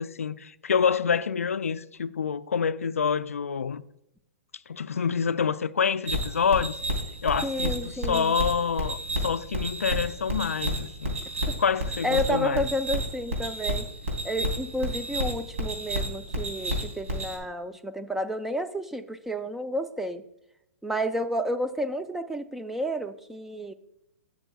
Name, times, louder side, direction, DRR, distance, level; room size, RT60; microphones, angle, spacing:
voice 1, 0.0-3.8 4.7-6.8 7.2-11.2 11.6-12.7, left 6 dB, 85° left, 0.4 m, -27 dB
sound 1, 6.1-17.4, equal, 70° right, 3.2 m, -31 dB
voice 2, 7.4-8.3 11.5-11.6 12.0-13.9 14.2-20.2 20.8-23.7, equal, 5° right, 0.4 m, -31 dB
12.0 x 6.4 x 2.3 m
hypercardioid pair, 120°, 7 cm